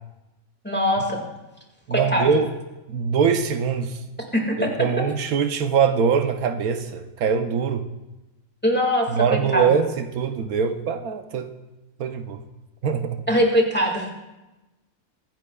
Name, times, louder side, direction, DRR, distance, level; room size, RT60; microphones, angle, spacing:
voice 1, 0.6-1.2 1.9-2.3 4.3-4.7 8.6-9.7 13.3-14.1, equal, 5° left, 0 dB, 1.8 m, -22 dB
voice 2, 1.9-2.5 2.9-4.0 4.8-7.8 9.1-11.5 12.0-12.4 12.8-13.2, right 6 dB, 85° right, 7 dB, 1.2 m, -23 dB
23.5 x 10.0 x 2.3 m, 1.0 s
omnidirectional pair, 1.5 m